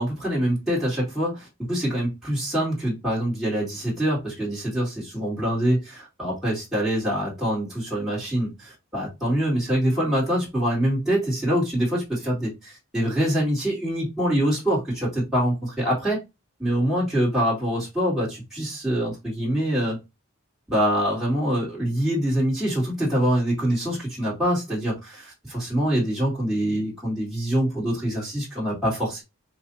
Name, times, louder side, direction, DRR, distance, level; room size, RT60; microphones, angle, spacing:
voice 1, 0.0-16.2 16.6-20.0 20.7-29.2, equal, ahead, 1.9 m, -25 dB
5.3 x 2.5 x 2.7 m
head